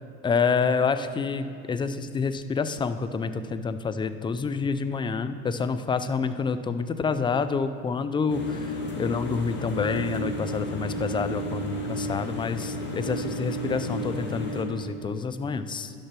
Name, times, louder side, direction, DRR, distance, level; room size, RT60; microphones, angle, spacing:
voice 1, 0.2-15.9, left 5 dB, 15° left, 11 dB, 0.4 m, -28 dB
sound 1, 8.3-14.6, equal, 35° left, 1.7 m, -32 dB
11.5 x 6.7 x 5.9 m, 2.4 s
supercardioid pair, 110°, 32 cm